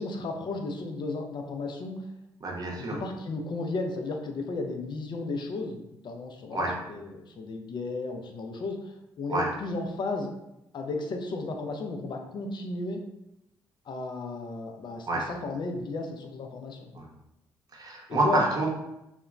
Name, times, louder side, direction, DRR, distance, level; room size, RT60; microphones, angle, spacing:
voice 1, 0.0-2.0 2.8-10.3 10.7-13.0 13.9-16.9 18.1-18.4, left 3 dB, 45° left, 4 dB, 0.5 m, -34 dB
voice 2, 2.4-3.0 6.5-6.8 9.3-9.5 15.1-15.3 16.9-17.1 17.7-18.7, right 2 dB, 35° right, -1 dB, 0.8 m, -27 dB
2.8 x 2.1 x 2.4 m, 0.88 s
hypercardioid pair, 45°, 11 cm